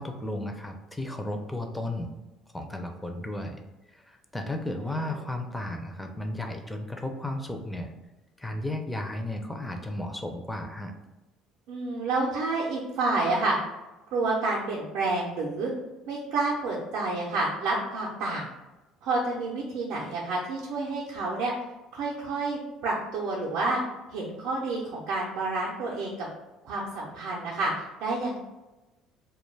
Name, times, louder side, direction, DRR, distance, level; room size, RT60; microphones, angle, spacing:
voice 1, 0.0-2.1 2.5-3.6 3.9-7.9 8.4-10.9, left 1 dB, 10° left, 4 dB, 0.4 m, -34 dB
voice 2, 11.7-13.6 14.1-15.7 16.1-18.5 19.0-21.5 21.9-23.8 24.1-26.3 26.6-28.4, right 3 dB, 75° right, -4 dB, 0.5 m, -29 dB
2.2 x 2.2 x 3.2 m, 1.1 s
supercardioid pair, 95°, 0 cm